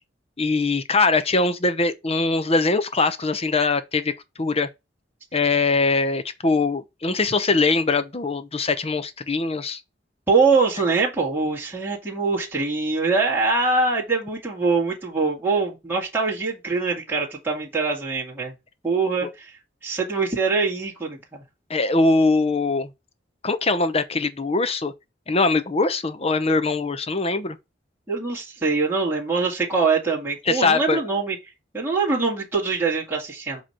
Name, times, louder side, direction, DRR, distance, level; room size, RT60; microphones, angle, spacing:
voice 1, 0.4-4.7 5.3-9.8 19.2-19.3 21.7-22.9 23.4-24.9 25.3-27.6 30.5-31.0, left 3 dB, 35° left, 0.8 m, -22 dB
voice 2, 10.3-18.5 18.8-19.5 19.8-21.2 28.1-31.4 31.7-33.6, right 4 dB, 10° right, 2.2 m, -23 dB
7.7 x 3.1 x 5.6 m
head